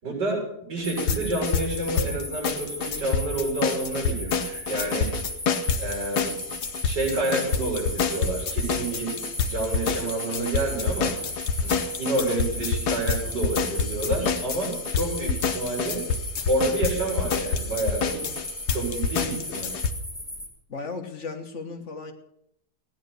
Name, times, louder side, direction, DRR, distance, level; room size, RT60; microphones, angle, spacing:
voice 1, 0.0-5.1 5.8-6.3 6.8-9.1 9.4-11.1 11.6-16.0 16.5-18.2 18.7-19.7, right 2 dB, 80° right, -2 dB, 7.6 m, -29 dB
sound 1, 0.8-19.9, left 5 dB, 70° left, 1.6 m, -27 dB
sound 2, 0.8-20.5, left 1 dB, ahead, 2.5 m, -37 dB
voice 2, 20.7-22.1, left 4 dB, 45° left, 5 dB, 1.6 m, -35 dB
16.0 x 10.0 x 6.6 m, 0.75 s
omnidirectional pair, 1.8 m